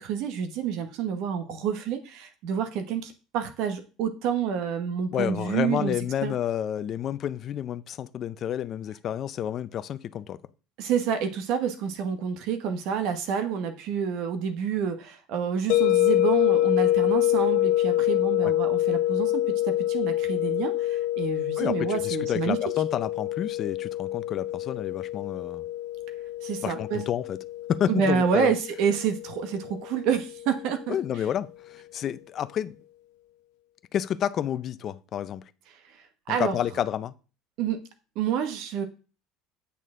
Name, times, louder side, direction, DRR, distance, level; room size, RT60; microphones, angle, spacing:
voice 1, 0.0-5.9 6.2-6.3 10.8-22.6 26.4-27.0 27.9-31.0 35.8-36.6 37.6-37.8 38.1-38.8, right 7 dB, 60° right, 1.0 m, -28 dB
voice 2, 5.1-10.4 18.4-18.5 21.6-25.7 26.6-27.4 27.7-28.5 30.9-32.7 33.9-35.4 36.3-37.1, left 10 dB, 35° left, 0.5 m, -30 dB
sound 1, 15.7-30.6, left 14 dB, 85° left, 0.9 m, -26 dB
8.3 x 6.5 x 3.7 m
cardioid pair, 165°, 0 cm